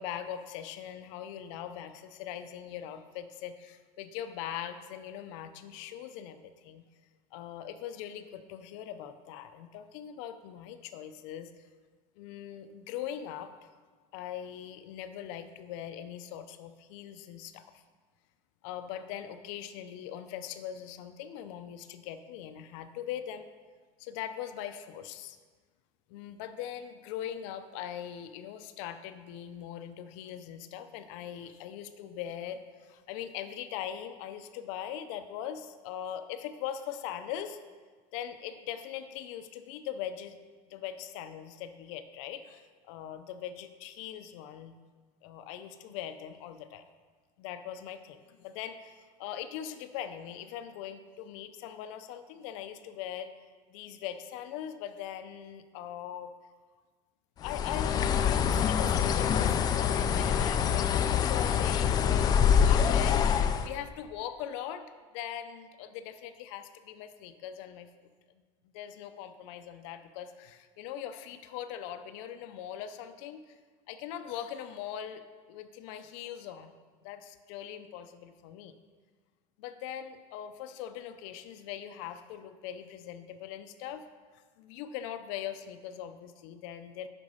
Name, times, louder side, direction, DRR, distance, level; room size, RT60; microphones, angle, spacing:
voice 1, 0.0-6.8 7.3-11.5 12.2-13.7 14.1-17.8 18.6-23.5 24.0-25.4 26.1-37.6 38.1-40.4 40.7-44.8 45.2-46.9 47.4-53.3 53.7-56.3 57.4-64.9 65.1-67.9 68.7-73.6 73.9-75.2 75.5-76.7 77.0-78.7 79.6-84.1 84.6-87.1, left 10 dB, 80° left, 9 dB, 0.6 m, -41 dB
Bird, 57.4-63.7, left 8 dB, 25° left, 0.3 m, -25 dB
8.0 x 5.2 x 5.5 m, 1.5 s
cardioid pair, 160°, 16 cm